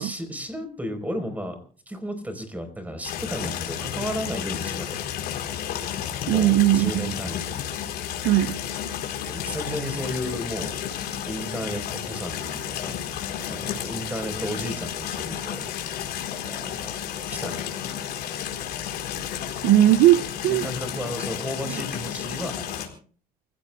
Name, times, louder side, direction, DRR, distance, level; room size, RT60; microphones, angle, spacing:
voice 1, 0.0-1.6 1.9-5.0 6.3-7.6 9.3-13.0 13.4-15.7 16.4-17.0 17.3-17.9 20.5-22.6, equal, 10° right, 4.3 m, -33 dB
sound 1, 3.0-22.9, left 9 dB, 75° left, 4.2 m, -32 dB
voice 2, 6.3-7.1 8.2-8.6 19.6-20.6, right 14 dB, 85° right, 0.6 m, -18 dB
29.0 x 16.5 x 2.3 m
cardioid pair, 110°, 17 cm